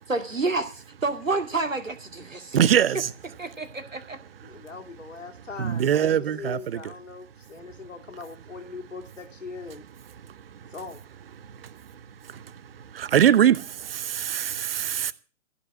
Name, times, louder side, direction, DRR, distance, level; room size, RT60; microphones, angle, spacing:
voice 1, 0.1-2.6 3.4-4.2, right 3 dB, 90° right, 2.4 m, -29 dB
voice 2, 2.5-3.1 5.6-6.8 12.9-13.6 13.9-15.1, right 9 dB, 50° right, 0.8 m, -22 dB
voice 3, 4.4-9.8 10.7-11.0, left 4 dB, 75° left, 2.6 m, -40 dB
15.5 x 5.6 x 8.5 m
figure-of-eight pair, 130°, 38 cm